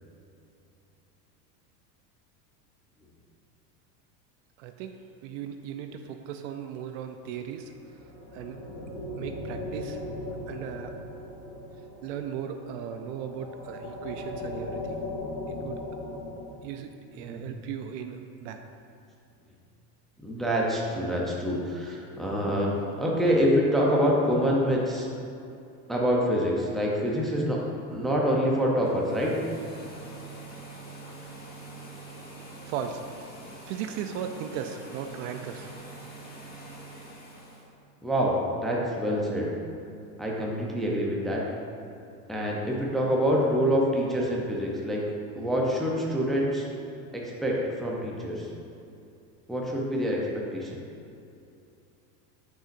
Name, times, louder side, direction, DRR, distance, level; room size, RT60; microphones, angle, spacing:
voice 1, 4.6-5.0 5.2-7.7 8.3-8.6 9.2-10.0 10.5-10.9 12.0-15.0 15.5-15.8 16.6-18.6 32.6-33.2 33.7-35.7, right 8 dB, 55° right, 6 dB, 0.5 m, -37 dB
sound 1, 7.6-16.5, left 2 dB, 40° left, 1.4 m, -38 dB
voice 2, 20.2-25.1 25.9-27.6 27.9-29.3 32.5-32.6 38.0-39.5 40.2-41.4 42.3-45.0 45.4-46.7 47.1-48.5 49.5-50.2 50.5-50.8, equal, ahead, -3 dB, 0.5 m, -26 dB
sound 2, 28.8-37.7, right 2 dB, 20° left, 1.3 m, -44 dB
8.8 x 5.6 x 2.5 m, 2.6 s
supercardioid pair, 130°, 48 cm